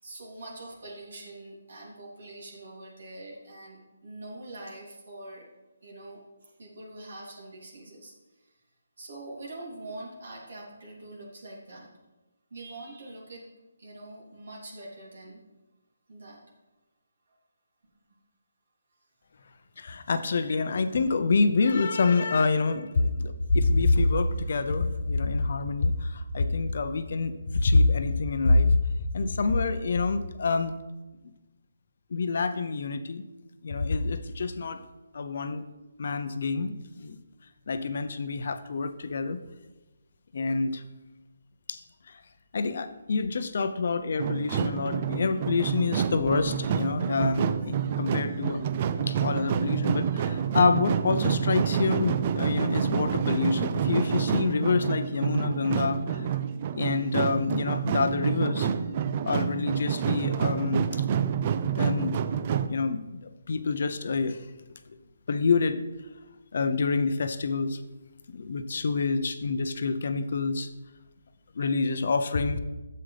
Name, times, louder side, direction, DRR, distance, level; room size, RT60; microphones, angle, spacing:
voice 1, 0.0-5.4 5.8-8.1 9.0-11.9 12.5-13.5 13.8-15.4 16.1-16.4, right 2 dB, 65° right, -4 dB, 2.9 m, -44 dB
voice 2, 19.8-28.8 29.1-30.7 32.1-33.2 33.6-34.8 35.1-35.6 36.0-37.2 37.7-39.4 40.3-40.8 41.7-41.8 42.1-42.2 42.5-48.6 49.1-56.3 56.7-58.7 59.2-60.8 61.7-62.2 62.7-64.4 65.3-65.8 66.5-67.8 68.3-70.7 71.6-72.6, left 3 dB, 55° left, 10 dB, 0.7 m, -27 dB
sound 1, 44.2-62.7, right 8 dB, 30° right, 0.4 m, -28 dB
9.6 x 7.8 x 3.4 m, 1.1 s
hypercardioid pair, 165°, 0 cm